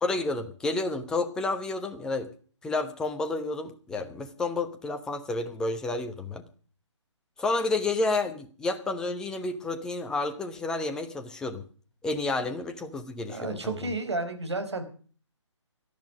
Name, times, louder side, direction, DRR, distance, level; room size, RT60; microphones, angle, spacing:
voice 1, 0.0-2.3 2.6-6.4 7.4-11.6 12.0-13.8, left 3 dB, 5° left, 7 dB, 1.0 m, -30 dB
voice 2, 13.3-14.8, right 2 dB, 60° right, 6 dB, 4.8 m, -32 dB
17.5 x 13.0 x 5.0 m, 0.42 s
figure-of-eight pair, 145°, 16 cm